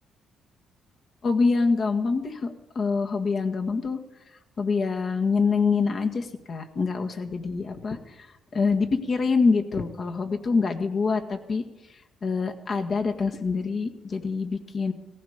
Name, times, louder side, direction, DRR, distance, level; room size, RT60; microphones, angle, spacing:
voice 1, 1.2-2.5 2.7-4.0 4.6-8.0 8.5-11.6 12.2-14.9, left 4 dB, 50° left, 4 dB, 1.7 m, -25 dB
18.0 x 15.5 x 5.1 m, 0.99 s
cardioid pair, 90°, 0 cm